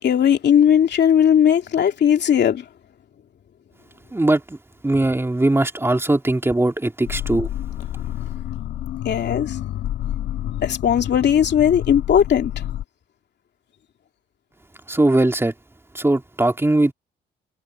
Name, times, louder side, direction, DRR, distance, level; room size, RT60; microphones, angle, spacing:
voice 1, 0.0-2.6 9.0-9.6 10.5-12.5, left 9 dB, 60° left, 2.8 m, -17 dB
voice 2, 4.1-4.6 4.8-7.5 14.9-15.5 15.9-16.9, right 2 dB, 10° right, 2.5 m, -20 dB
sound 1, 7.0-12.8, left 12 dB, 80° left, 2.2 m, -29 dB
cardioid pair, 90°, 20 cm